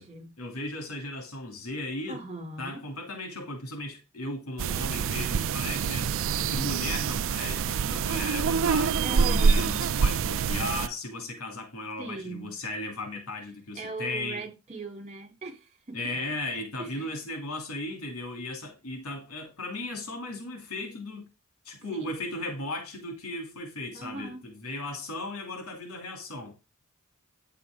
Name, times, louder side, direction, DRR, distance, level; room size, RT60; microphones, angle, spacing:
voice 1, 0.4-2.2 2.6-6.1 6.4-14.4 15.9-21.3 21.6-26.6, left 2 dB, 80° left, 2.8 m, -36 dB
voice 2, 2.1-2.8 9.0-9.8 12.0-12.5 13.7-16.0 16.8-17.1 21.9-22.1 23.9-24.4, right 3 dB, 30° right, 3.1 m, -39 dB
sound 1, 4.6-10.9, right 6 dB, 65° right, 0.4 m, -26 dB
9.6 x 6.7 x 3.7 m
head